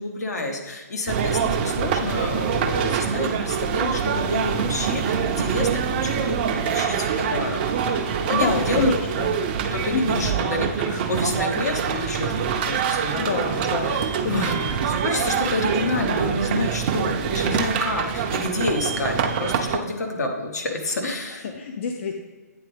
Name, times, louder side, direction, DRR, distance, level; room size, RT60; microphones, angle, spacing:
voice 1, 0.0-7.6 8.3-8.9 9.7-14.5 14.9-21.5, left 2 dB, 70° left, 2 dB, 1.2 m, -29 dB
sound 1, 1.1-19.8, right 7 dB, 35° right, 0.5 m, -25 dB
voice 2, 8.3-9.3 9.9-10.4 13.2-14.8 21.4-22.1, left 4 dB, 45° left, 4 dB, 0.5 m, -27 dB
8.7 x 3.4 x 3.3 m, 1.4 s
hypercardioid pair, 145°, 9 cm